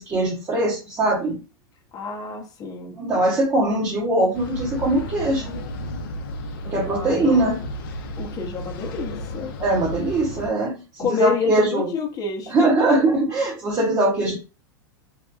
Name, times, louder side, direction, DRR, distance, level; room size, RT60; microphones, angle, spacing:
voice 1, 0.0-1.4 2.9-5.6 6.6-7.6 9.6-11.9 12.5-14.4, right 2 dB, 25° right, -3 dB, 0.8 m, -21 dB
voice 2, 1.9-3.0 6.8-7.5 8.2-9.5 11.0-13.1, left 5 dB, 30° left, 1 dB, 0.7 m, -29 dB
sound 1, 4.3-10.5, left 1 dB, 65° left, 0.5 m, -33 dB
2.8 x 2.2 x 2.3 m, 0.31 s
hypercardioid pair, 100°, 12 cm